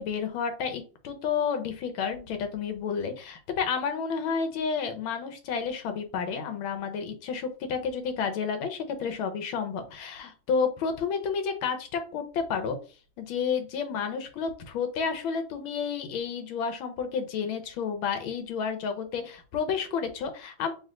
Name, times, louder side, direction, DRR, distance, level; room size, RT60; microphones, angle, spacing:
voice 1, 0.0-12.8 13.2-20.7, left 6 dB, 85° left, 8 dB, 1.6 m, -31 dB
3.4 x 3.1 x 3.6 m, 0.35 s
omnidirectional pair, 2.2 m